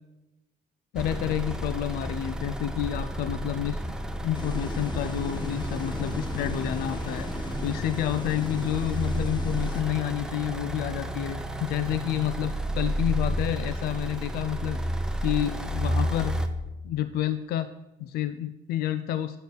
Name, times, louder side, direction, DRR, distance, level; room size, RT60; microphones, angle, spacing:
voice 1, 0.9-3.8 4.2-14.8 15.2-16.4 16.8-17.7 18.0-19.4, left 11 dB, 65° left, 11 dB, 0.4 m, -29 dB
sound 1, 1.0-16.5, right 1 dB, 5° right, 0.6 m, -31 dB
sound 2, 4.3-9.8, left 1 dB, 25° left, 0.9 m, -36 dB
8.5 x 4.1 x 6.6 m, 1.0 s
cardioid pair, 110°, 17 cm